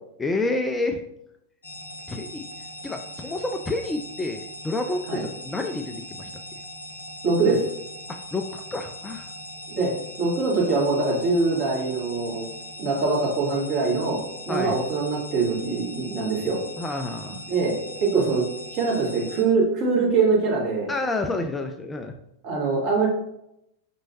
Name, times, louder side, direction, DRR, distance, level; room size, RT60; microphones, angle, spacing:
voice 1, 0.2-1.0 2.1-2.5 2.8-6.3 8.1-9.3 14.5-14.8 16.8-17.4 20.9-22.1, left 2 dB, 15° left, 5 dB, 0.3 m, -29 dB
sound 1, 1.6-19.4, left 1 dB, 70° left, 0.6 m, -40 dB
voice 2, 7.2-7.6 9.7-9.9 10.2-12.4 12.8-16.6 17.5-18.4 18.7-20.9 22.4-23.1, right 4 dB, 45° right, -4 dB, 1.6 m, -23 dB
5.3 x 3.0 x 2.7 m, 0.81 s
figure-of-eight pair, 90°, 0 cm